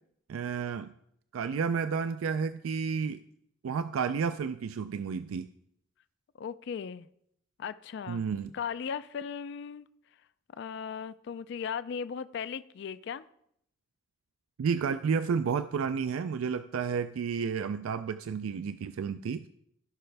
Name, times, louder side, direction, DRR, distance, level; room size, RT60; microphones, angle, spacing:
voice 1, 0.3-0.9 1.3-3.2 3.6-5.5 8.1-8.5 14.6-19.4, right 6 dB, 85° right, 11 dB, 0.4 m, -31 dB
voice 2, 6.3-7.1 7.6-8.2 8.5-9.9 10.5-13.2, left 7 dB, 55° left, 15 dB, 0.3 m, -37 dB
16.0 x 5.6 x 3.3 m, 0.74 s
head